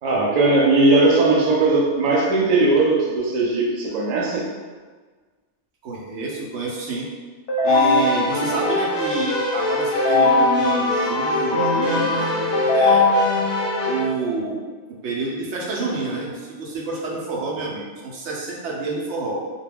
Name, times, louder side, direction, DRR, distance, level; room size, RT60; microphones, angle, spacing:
voice 1, 0.0-4.5, right 2 dB, 55° right, -3 dB, 0.5 m, -18 dB
voice 2, 5.8-7.1 7.6-13.0 13.8-14.6 14.9-19.4, right 3 dB, 75° right, -3 dB, 0.8 m, -28 dB
Keyboard (musical), 7.5-14.0, left 2 dB, 65° left, 0.8 m, -20 dB
2.2 x 2.2 x 3.3 m, 1.4 s
omnidirectional pair, 1.2 m